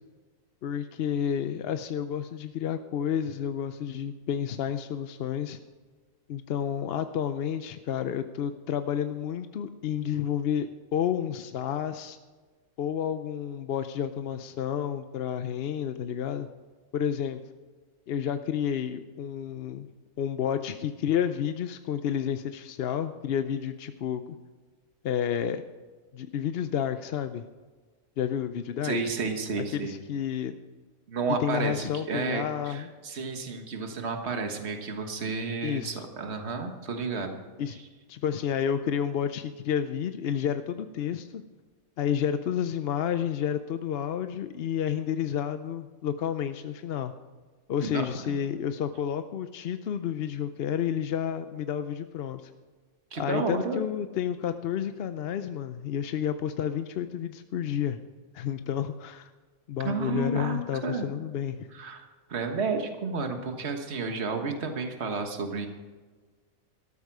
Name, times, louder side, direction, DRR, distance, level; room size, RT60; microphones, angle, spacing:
voice 1, 0.6-5.6 6.3-12.2 12.8-16.5 16.9-17.4 18.1-19.9 20.2-24.2 25.0-25.7 26.1-27.5 28.2-29.0 29.7-30.6 31.4-32.9 35.6-36.0 37.6-37.8 38.1-41.4 42.0-47.1 47.7-52.4 53.1-58.0 58.3-59.3 59.7-61.7, left 9 dB, 60° left, 10 dB, 0.6 m, -30 dB
voice 2, 28.8-29.9 31.1-37.4 37.7-37.8 47.8-48.4 53.1-53.8 59.8-61.1 61.7-65.7, right 4 dB, 50° right, 5 dB, 1.7 m, -31 dB
13.5 x 13.0 x 4.8 m, 1.4 s
omnidirectional pair, 1.5 m